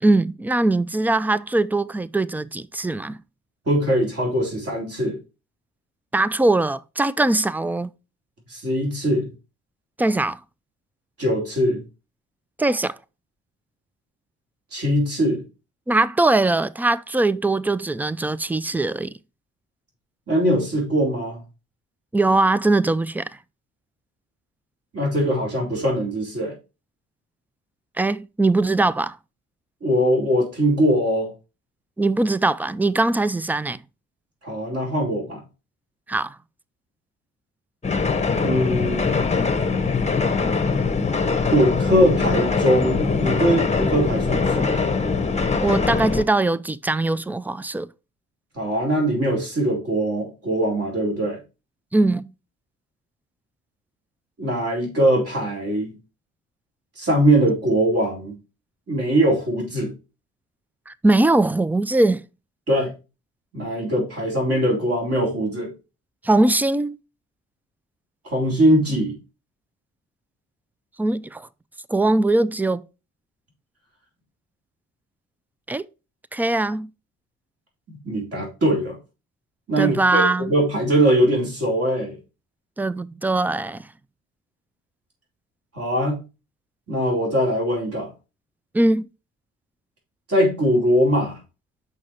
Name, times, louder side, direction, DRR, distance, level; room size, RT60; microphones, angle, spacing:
voice 1, 0.0-3.2 6.1-7.9 10.0-10.4 12.6-13.0 15.9-19.1 22.1-23.3 28.0-29.2 32.0-33.8 36.1-36.4 45.6-47.9 51.9-52.3 60.9-62.2 66.2-67.0 71.0-71.5 71.9-72.8 75.7-75.9 76.3-76.9 79.8-80.5 82.8-83.9 88.7-89.0, right 2 dB, 5° right, 0.3 m, -21 dB
voice 2, 3.7-5.2 8.5-9.3 11.2-11.8 14.7-15.4 20.3-21.4 24.9-26.5 29.8-31.3 34.4-35.4 38.4-39.2 41.5-44.8 48.6-51.4 54.4-56.0 57.0-58.4 58.9-59.9 62.7-62.9 63.5-65.7 68.2-69.2 78.0-79.0 79.7-82.2 85.7-86.2 86.9-88.1 90.3-91.4, equal, 50° right, 3.7 m, -21 dB
sound 1, 37.8-46.2, left 4 dB, 20° left, 0.8 m, -22 dB
6.4 x 5.5 x 4.3 m
cardioid pair, 90°, 30 cm